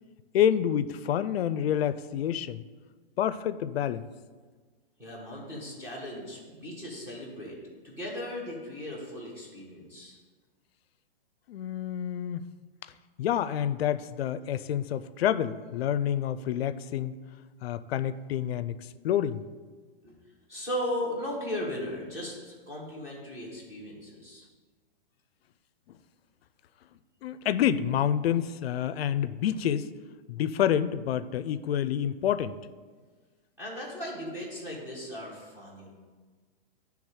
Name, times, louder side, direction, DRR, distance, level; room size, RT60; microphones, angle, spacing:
voice 1, 0.3-2.6 3.2-4.1 11.5-12.4 13.2-17.2 17.6-18.8 19.0-19.4 27.2-29.9 30.3-32.6, left 10 dB, 85° left, 14 dB, 0.5 m, -28 dB
voice 2, 5.0-7.6 7.8-10.2 20.0-24.4 33.6-35.9, left 1 dB, 10° right, -5 dB, 1.1 m, -37 dB
10.0 x 3.4 x 4.7 m, 1.4 s
hypercardioid pair, 170°, 30 cm